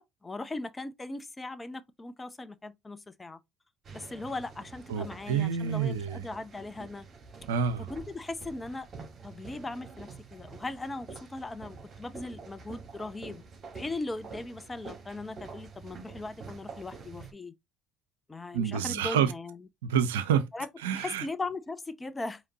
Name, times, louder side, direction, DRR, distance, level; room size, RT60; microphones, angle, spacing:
voice 1, 0.0-3.4 3.9-7.1 7.9-8.9 9.2-13.4 13.7-17.5 18.3-19.6 20.5-20.7 20.9-22.4, left 2 dB, 20° left, 0.6 m, -39 dB
sound 1, 3.8-17.3, right 4 dB, 40° right, 2.4 m, -47 dB
voice 2, 4.9-6.3 7.5-7.9 18.5-19.3 19.8-20.5 20.8-21.3, right 8 dB, 80° right, 0.5 m, -28 dB
5.0 x 2.9 x 2.8 m
hypercardioid pair, 55°, 0 cm